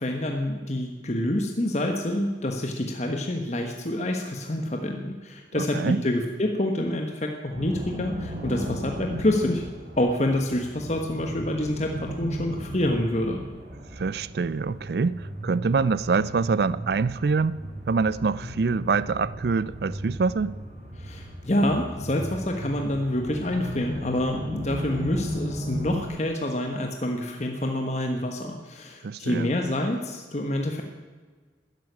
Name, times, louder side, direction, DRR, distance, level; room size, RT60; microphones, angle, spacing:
voice 1, 0.0-9.6 10.0-13.4 21.0-30.8, left 1 dB, 35° left, 1.2 m, -27 dB
sound 1, 7.5-26.0, equal, 35° right, 4.1 m, -36 dB
voice 2, 13.9-17.6 17.9-20.6 29.0-29.5, right 4 dB, 55° right, 0.4 m, -25 dB
13.5 x 11.0 x 9.7 m
head